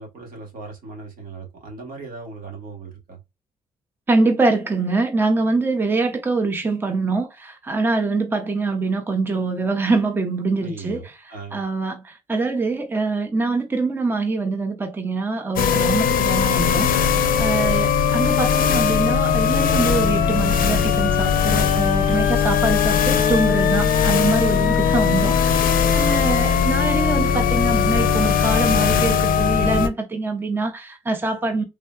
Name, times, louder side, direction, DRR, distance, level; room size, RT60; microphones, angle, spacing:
voice 1, 0.0-3.2 10.6-11.6 17.6-17.8, right 3 dB, 75° right, 1.3 m, -38 dB
voice 2, 4.1-11.0 11.5-31.6, right 3 dB, 15° right, 0.5 m, -24 dB
sound 1, 15.6-29.9, left 7 dB, 70° left, 0.5 m, -19 dB
3.6 x 2.1 x 2.2 m
cardioid pair, 120°, 15 cm